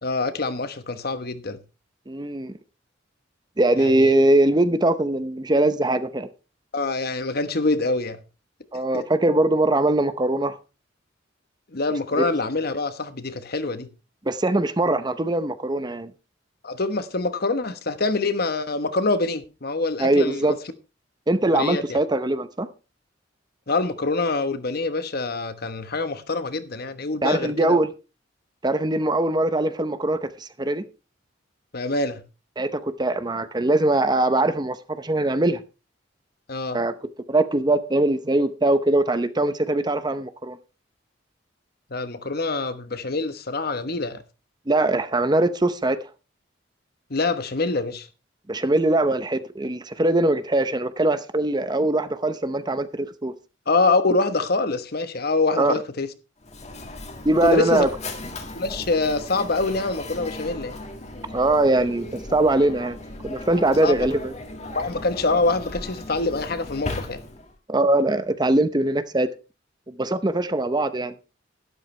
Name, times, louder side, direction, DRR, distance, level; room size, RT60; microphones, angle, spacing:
voice 1, 0.0-1.6 3.8-4.1 6.7-8.2 8.9-9.0 11.7-13.9 16.6-20.5 21.5-22.0 23.7-27.8 31.7-32.2 36.5-36.8 41.9-44.2 47.1-48.1 53.7-56.1 57.4-57.8 58.5-60.8 63.8-64.0 64.7-67.2, left 3 dB, 55° left, 1.2 m, -25 dB
voice 2, 2.1-2.5 3.6-6.3 8.7-10.6 12.2-12.3 14.3-16.1 20.0-20.6 21.3-22.7 27.2-27.9 28.6-30.9 32.6-35.6 36.7-36.9 37.3-40.6 44.7-46.1 48.5-53.3 55.6-55.8 57.2-57.9 61.3-63.0 63.2-64.3 67.7-69.3 69.9-71.1, right 2 dB, 20° right, 0.7 m, -21 dB
Mechanisms, 56.4-67.6, left 2 dB, 35° left, 1.9 m, -37 dB
12.5 x 12.0 x 3.3 m
head